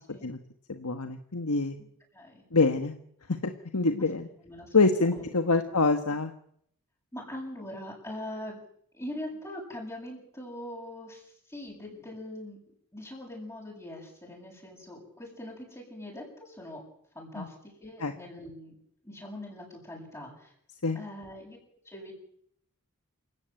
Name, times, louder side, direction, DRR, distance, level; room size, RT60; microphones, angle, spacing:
voice 1, 0.7-1.8 2.5-2.9 3.4-4.3 4.7-6.3 17.4-17.5 18.0-18.1 20.8-21.0, left 3 dB, 75° left, 7 dB, 1.5 m, -26 dB
voice 2, 2.1-2.5 4.4-4.7 5.1-5.2 5.6-5.8 7.1-8.6 8.9-12.6 12.9-16.8 17.1-18.7 19.0-20.5 20.9-21.6 21.8-22.1, left 1 dB, 15° left, -4 dB, 8.0 m, -42 dB
27.5 x 16.5 x 9.1 m, 0.69 s
head